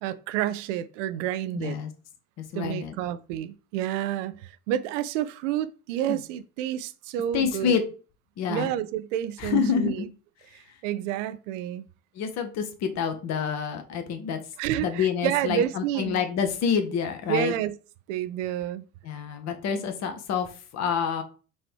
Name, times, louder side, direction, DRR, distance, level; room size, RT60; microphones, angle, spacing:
voice 1, 0.0-1.8 2.5-7.8 8.5-10.0 10.5-11.9 14.6-16.2 17.3-17.7 18.1-18.8, right 11 dB, 55° right, 0.5 m, -29 dB
voice 2, 1.5-1.9 2.4-3.0 6.1-6.2 7.3-7.8 8.4-8.7 9.4-9.9 12.1-14.4 14.8-17.5 19.0-21.2, left 7 dB, 35° left, 0.8 m, -27 dB
5.3 x 2.9 x 3.3 m
figure-of-eight pair, 65°, 46 cm